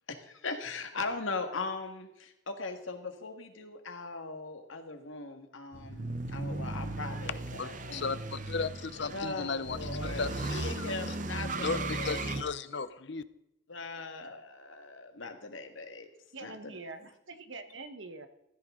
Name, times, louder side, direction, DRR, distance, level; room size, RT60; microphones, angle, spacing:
voice 1, 0.1-8.1 9.1-10.3 10.6-12.4 13.7-16.1 16.4-16.7, left 3 dB, 90° left, 6 dB, 1.9 m, -39 dB
sound 1, 5.7-12.4, right 2 dB, 40° right, 0.8 m, -37 dB
voice 2, 7.6-11.2 11.6-13.2, left 4 dB, 65° left, 14 dB, 0.7 m, -36 dB
voice 3, 16.3-18.3, right 3 dB, 75° right, 9 dB, 1.3 m, -44 dB
15.0 x 13.0 x 3.8 m, 0.87 s
head